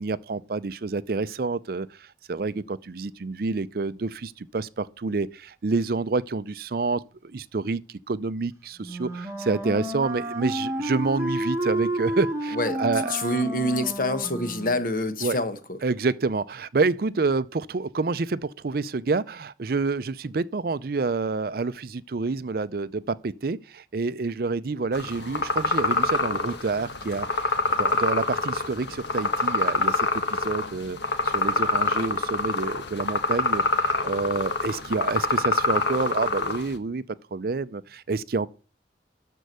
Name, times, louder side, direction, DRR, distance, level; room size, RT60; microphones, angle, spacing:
voice 1, 0.0-13.2 15.2-15.4 15.8-31.0 31.2-37.0 37.3-38.5, right 3 dB, 55° right, 0.5 m, -28 dB
Wind instrument woodwind instrument, 8.8-14.9, right 1 dB, 15° right, 1.1 m, -30 dB
voice 2, 13.1-15.8, left 1 dB, 50° left, 1.1 m, -26 dB
sound 1, 24.9-36.8, left 3 dB, 80° left, 1.4 m, -26 dB
13.0 x 4.6 x 6.7 m
head